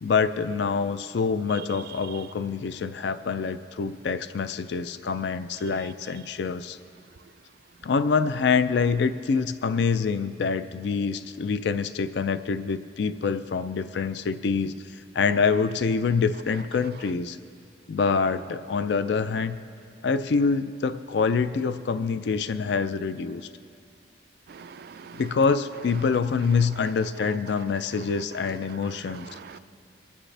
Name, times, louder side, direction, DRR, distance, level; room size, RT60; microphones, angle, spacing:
voice 1, 0.0-6.8 7.8-17.4 17.9-19.6 20.0-23.5 25.2-29.3, left 5 dB, 60° left, 12 dB, 0.4 m, -26 dB
voice 2, 24.5-25.3 26.8-26.9 27.5-27.6 27.9-29.6, right 6 dB, 55° right, 11 dB, 0.3 m, -45 dB
24.5 x 8.7 x 3.3 m, 2.4 s
head